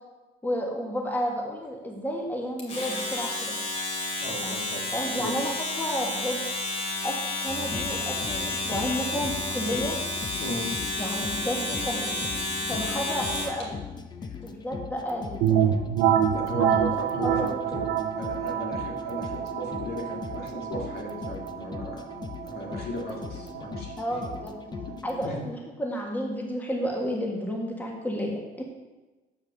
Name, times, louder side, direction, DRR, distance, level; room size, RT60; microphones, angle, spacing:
voice 1, 0.4-3.6 4.4-4.6 4.9-5.5 5.8-6.4 7.0-10.0 11.0-12.3 12.7-13.8 14.4-15.8 16.6-16.7 17.2-17.5 24.0-24.5 25.0-28.6, equal, 10° left, 0 dB, 1.5 m, -31 dB
Domestic sounds home sounds, 2.6-13.6, left 2 dB, 40° left, 2.5 m, -31 dB
voice 2, 4.2-5.3 10.4-10.7 14.2-14.4 16.3-17.6 18.2-22.1 22.4-24.2 24.9-25.0 25.2-25.4, left 1 dB, 70° left, -1 dB, 2.2 m, -36 dB
sound 1, 7.5-25.3, left 5 dB, 25° left, 0.6 m, -40 dB
sound 2, 15.4-25.0, right 9 dB, 90° right, 0.6 m, -28 dB
7.8 x 5.1 x 6.5 m, 1.2 s
cardioid pair, 110°, 17 cm